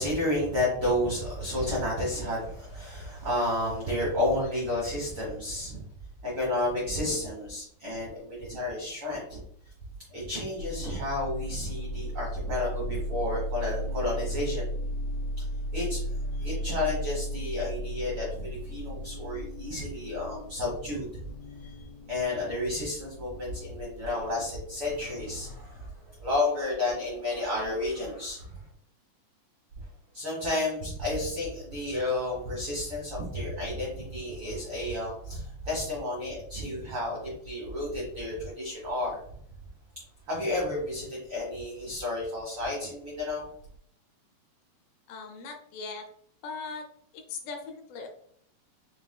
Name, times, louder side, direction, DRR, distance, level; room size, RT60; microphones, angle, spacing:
voice 1, 0.0-5.8 6.2-9.4 10.1-14.7 15.4-15.5 15.7-16.0 16.4-21.1 21.6-21.7 22.1-28.6 30.1-39.2 40.3-43.5, left 1 dB, 90° right, -4 dB, 1.1 m, -31 dB
sound 1, 10.6-25.9, equal, 60° left, 1.6 m, -36 dB
voice 2, 45.1-46.1 46.4-46.9 47.1-48.1, left 4 dB, 80° left, 3 dB, 2.4 m, -39 dB
5.8 x 3.7 x 2.2 m, 0.66 s
omnidirectional pair, 4.6 m